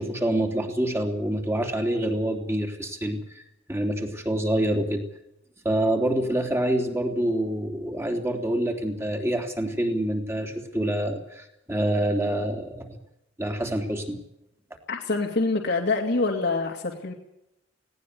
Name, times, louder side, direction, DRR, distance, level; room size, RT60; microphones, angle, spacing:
voice 1, 0.0-3.4 3.7-5.0 5.6-13.0 13.4-14.2, right 1 dB, 15° right, 4 dB, 3.2 m, -26 dB
voice 2, 14.9-17.1, left 3 dB, 60° left, 1 dB, 2.5 m, -25 dB
19.0 x 18.0 x 8.3 m, 0.84 s
head